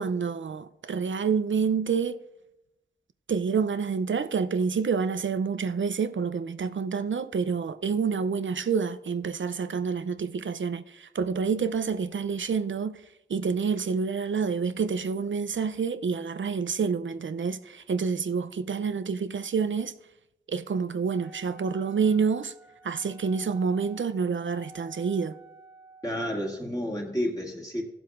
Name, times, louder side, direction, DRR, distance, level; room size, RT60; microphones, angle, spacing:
voice 1, 0.0-2.2 3.3-13.0 13.3-19.9 20.5-22.5 22.8-25.4, right 5 dB, 75° right, 0.4 m, -28 dB
Wind instrument woodwind instrument, 21.1-26.1, right 2 dB, 10° right, 1.6 m, -51 dB
voice 2, 26.0-27.8, equal, 20° left, 2.1 m, -30 dB
16.0 x 7.7 x 2.4 m
wide cardioid pair, 65°, 20 cm